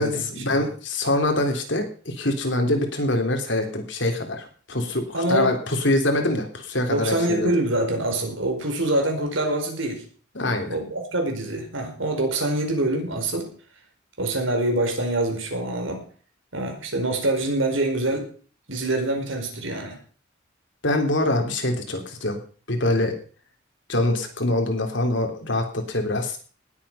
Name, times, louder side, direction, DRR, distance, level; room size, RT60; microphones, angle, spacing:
voice 1, 0.0-7.5 10.3-10.8 20.8-22.4 22.7-23.1 23.9-26.4, left 1 dB, 65° left, 4 dB, 3.3 m, -24 dB
voice 2, 5.1-5.5 6.9-10.1 10.7-13.5 14.2-16.0 16.5-18.3 18.7-20.0, right 1 dB, 75° right, 3 dB, 5.0 m, -25 dB
19.0 x 8.5 x 5.7 m, 0.41 s
head